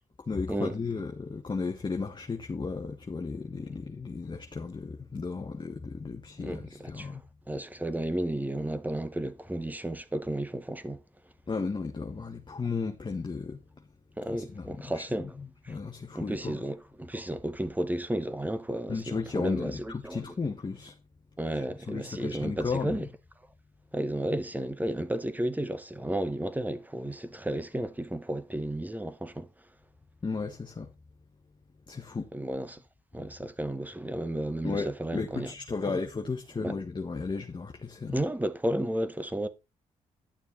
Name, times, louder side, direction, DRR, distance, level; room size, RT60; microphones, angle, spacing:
voice 1, 0.3-7.2 11.5-13.6 14.2-15.0 15.4-16.6 18.9-20.9 21.5-23.1 30.2-30.9 31.9-32.3 33.2-33.3 34.6-38.2, left 4 dB, 30° left, 1.6 m, -34 dB
voice 2, 6.4-7.1 7.5-11.0 14.2-15.4 15.6-15.7 16.1-20.2 21.4-23.1 23.9-29.5 32.3-32.8 33.1-35.5 35.9-36.0 36.6-36.8 38.1-39.5, right 1 dB, 10° right, 1.7 m, -33 dB
11.5 x 6.7 x 4.2 m
supercardioid pair, 55°, 15 cm